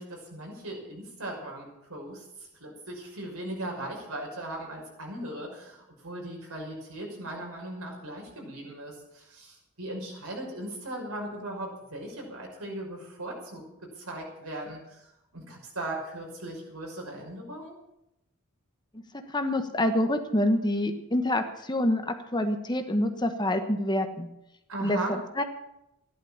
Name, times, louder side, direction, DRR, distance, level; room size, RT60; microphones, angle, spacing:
voice 1, 0.0-2.2 2.6-13.6 14.0-15.1 15.3-17.7 24.7-25.1, right 1 dB, 90° right, 0 dB, 5.8 m, -38 dB
voice 2, 18.9-24.3 24.8-25.4, left 1 dB, 20° left, 7 dB, 1.2 m, -27 dB
14.0 x 11.5 x 7.3 m, 0.84 s
head